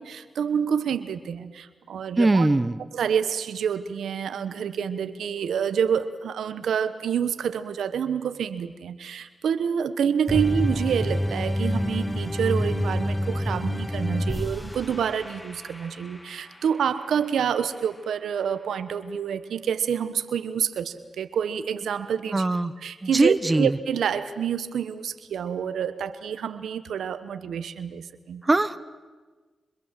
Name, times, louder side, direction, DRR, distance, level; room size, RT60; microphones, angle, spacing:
voice 1, 0.0-2.5 2.9-22.5 22.8-28.4, right 7 dB, 85° right, 12 dB, 1.2 m, -28 dB
voice 2, 2.2-2.8 22.3-22.7 23.0-23.7 28.5-28.8, right 2 dB, 30° right, 12 dB, 1.2 m, -21 dB
sound 1, 10.3-16.6, equal, 10° left, 1.0 m, -28 dB
28.0 x 26.0 x 7.6 m, 1.4 s
cardioid pair, 55°, 0 cm